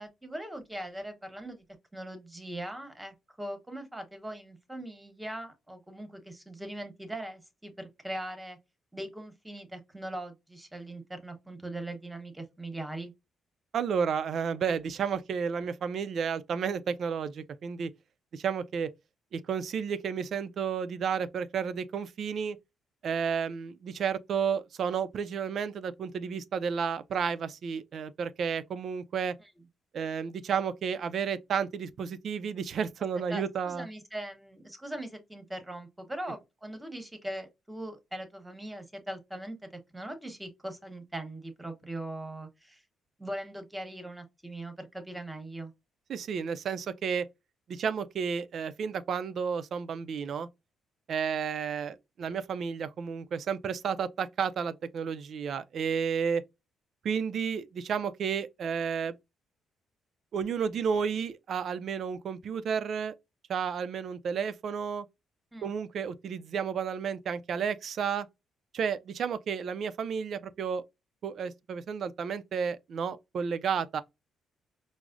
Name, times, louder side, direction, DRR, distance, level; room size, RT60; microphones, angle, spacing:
voice 1, 0.0-1.6 1.9-8.6 8.9-13.1 29.4-29.5 33.3-42.8 43.2-45.7 65.5-65.7, right 1 dB, 10° right, 1.0 m, -40 dB
voice 2, 13.7-17.9 18.3-18.9 19.3-22.6 23.0-29.4 29.9-33.9 46.1-47.3 47.7-50.5 51.1-56.4 57.0-59.2 60.3-63.1 63.5-65.1 65.6-68.3 68.7-70.8 71.2-74.0, right 6 dB, 60° right, 0.4 m, -32 dB
4.7 x 2.0 x 2.4 m
cardioid pair, 90°, 0 cm